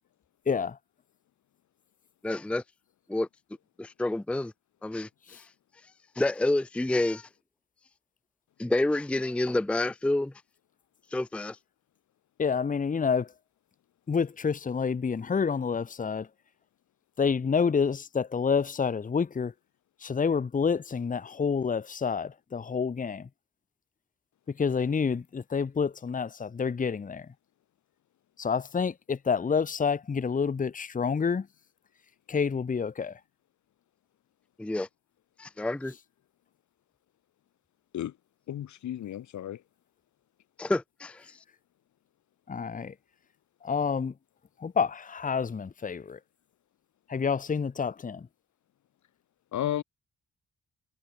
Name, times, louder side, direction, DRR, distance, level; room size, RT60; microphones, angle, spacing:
voice 1, 0.5-0.8 5.3-5.4 12.4-13.3 14.1-16.3 17.2-19.5 20.0-23.3 24.5-27.3 28.4-31.5 32.3-33.2 42.5-42.9 43.6-44.1 44.6-46.2 47.1-48.3, left 6 dB, 25° left, 0.9 m, -28 dB
voice 2, 2.2-2.6 3.1-3.3 3.8-4.5 4.8-5.1 5.3-5.4 6.2-7.3 8.6-10.3 11.1-11.6 34.6-34.9 35.4-35.9 40.6-41.4, left 2 dB, 5° left, 0.5 m, -28 dB
voice 3, 38.5-39.6 49.5-49.8, left 11 dB, 75° left, 1.6 m, -33 dB
cardioid pair, 85°, 29 cm